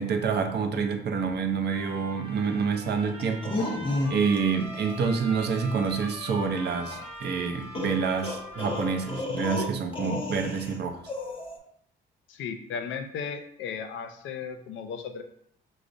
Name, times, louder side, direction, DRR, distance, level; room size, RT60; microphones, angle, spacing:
voice 1, 0.0-3.5 4.1-11.0, right 5 dB, 60° right, 5 dB, 0.5 m, -27 dB
Trumpet, 1.7-9.3, right 1 dB, 30° right, 0.8 m, -43 dB
sound 1, 3.2-4.4 4.7-5.0 6.9-7.0 7.7-10.8 11.1-11.6, left 2 dB, 25° left, 0.6 m, -32 dB
Wind instrument woodwind instrument, 4.2-9.3, left 3 dB, 85° right, 0.8 m, -46 dB
voice 2, 12.3-15.2, left 6 dB, 75° left, 7 dB, 0.5 m, -35 dB
4.8 x 2.0 x 2.5 m, 0.70 s
cardioid pair, 90°, 20 cm